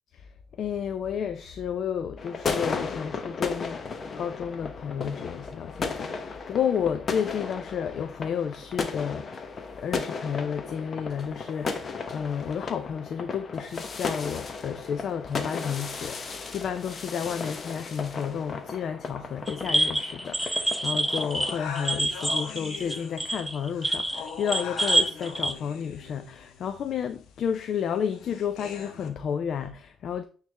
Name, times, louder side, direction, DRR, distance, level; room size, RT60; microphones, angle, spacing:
voice 1, 0.6-3.8 4.2-9.5 9.8-30.2, left 7 dB, 65° left, 0.5 m, -31 dB
sound 1, 2.2-21.6, left 4 dB, 45° left, 0.9 m, -35 dB
sound 2, 19.5-25.5, right 1 dB, 5° right, 0.6 m, -27 dB
sound 3, 21.1-29.1, left 7 dB, 85° left, 0.9 m, -41 dB
9.2 x 3.3 x 3.3 m
cardioid pair, 90°, 0 cm